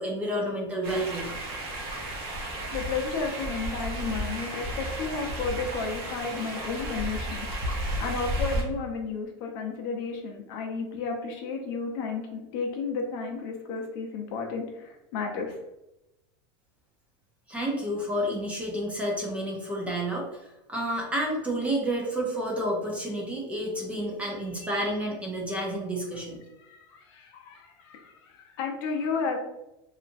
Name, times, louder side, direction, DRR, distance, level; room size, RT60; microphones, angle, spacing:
voice 1, 0.0-1.3 17.5-20.3 20.7-26.4, right 1 dB, 10° right, -2 dB, 0.5 m, -30 dB
sound 1, 0.8-8.6, right 1 dB, 45° right, 0.7 m, -33 dB
voice 2, 2.7-15.6 26.6-29.4, left 4 dB, 60° left, 1 dB, 0.6 m, -33 dB
2.9 x 2.4 x 2.5 m, 0.93 s
supercardioid pair, 150°, 13 cm